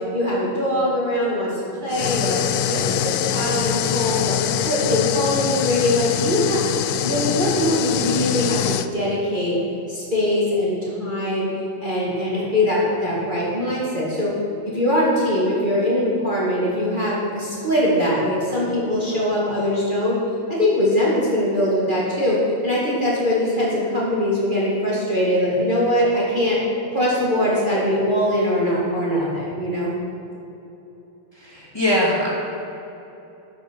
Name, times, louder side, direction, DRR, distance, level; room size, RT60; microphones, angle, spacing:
voice 1, 0.1-2.4 2.7-4.4 4.6-6.6 7.0-9.6 9.9-11.5 11.8-14.3 14.6-20.2 20.5-22.4 22.6-26.6 26.9-29.9, left 1 dB, 25° right, -7 dB, 2.2 m, -22 dB
sound 1, 1.9-8.9, left 10 dB, 75° left, 0.8 m, -24 dB
voice 2, 31.3-32.3, left 1 dB, 10° left, -6 dB, 2.4 m, -21 dB
13.5 x 6.9 x 6.2 m, 3.0 s
omnidirectional pair, 2.1 m